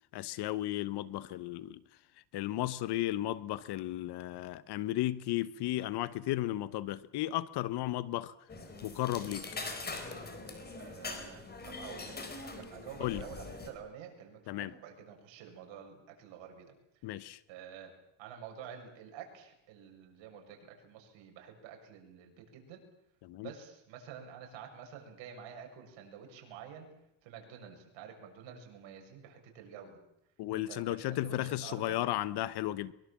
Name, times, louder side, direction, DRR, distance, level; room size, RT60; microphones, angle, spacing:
voice 1, 0.1-1.8 2.3-8.3 8.8-9.5 13.0-13.2 14.5-14.7 17.0-17.4 23.2-23.5 30.4-32.9, left 15 dB, 55° left, 1.1 m, -34 dB
sound 1, 8.5-13.7, left 3 dB, 20° left, 4.2 m, -43 dB
voice 2, 10.8-17.1 17.5-17.9 18.2-22.8 23.4-26.9 27.2-30.0 30.5-32.1, right 8 dB, 65° right, 7.2 m, -49 dB
23.5 x 23.0 x 7.5 m
cardioid pair, 145°, 49 cm